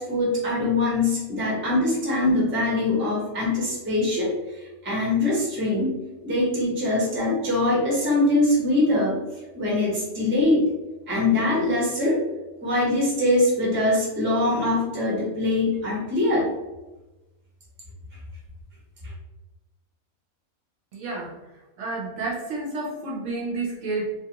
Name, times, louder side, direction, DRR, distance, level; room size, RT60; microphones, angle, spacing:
voice 1, 0.0-5.9 6.2-9.2 9.5-10.6 11.1-12.2 12.6-16.5, left 2 dB, 10° right, -5 dB, 0.6 m, -23 dB
voice 2, 20.9-21.3 21.8-24.2, right 3 dB, 65° right, -3 dB, 0.9 m, -30 dB
2.4 x 2.4 x 2.8 m, 1.1 s
omnidirectional pair, 1.5 m